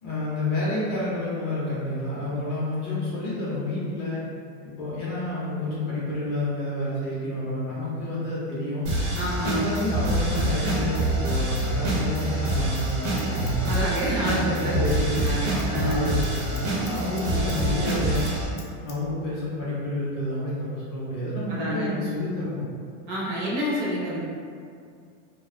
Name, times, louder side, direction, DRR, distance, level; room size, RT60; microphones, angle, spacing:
voice 1, 0.0-4.2 4.6-8.9 9.4-13.6 14.2-18.3 18.8-22.6, left 2 dB, 30° left, -9 dB, 0.4 m, -29 dB
sound 1, 8.9-18.5, right 2 dB, 80° right, 0.8 m, -26 dB
voice 2, 9.1-9.7 13.7-16.1 21.5-21.9 23.1-24.2, equal, 35° right, -8 dB, 0.4 m, -28 dB
Scissors, 12.6-14.5 14.8-15.0 15.3-17.6 17.9-19.0 19.2-19.3, left 5 dB, 90° left, 0.6 m, -46 dB
2.6 x 2.0 x 2.4 m, 2.3 s
supercardioid pair, 175°, 35 cm